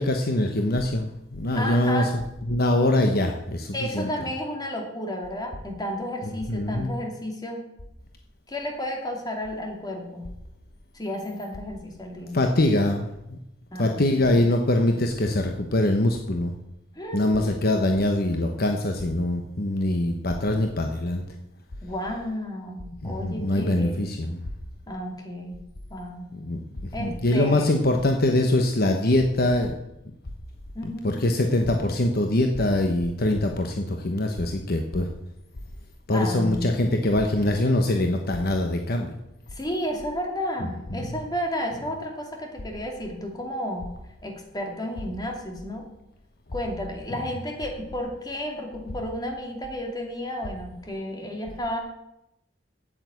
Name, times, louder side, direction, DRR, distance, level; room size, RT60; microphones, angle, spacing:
voice 1, 0.0-2.2 2.5-4.1 6.5-6.9 12.3-13.4 13.8-16.5 17.1-21.2 23.0-24.5 26.3-29.7 31.0-35.1 36.1-39.1 40.9-41.1, left 1 dB, 55° left, 4 dB, 1.0 m, -23 dB
voice 2, 1.5-2.1 3.7-7.7 8.5-10.3 10.9-12.4 13.7-14.5 16.9-17.5 21.8-24.1 24.9-25.6 25.9-26.3 26.9-27.7 30.7-31.2 36.1-36.9 39.5-43.9 44.2-45.8 46.5-51.8, equal, 20° left, 2 dB, 2.5 m, -32 dB
8.9 x 8.7 x 8.3 m, 0.84 s
head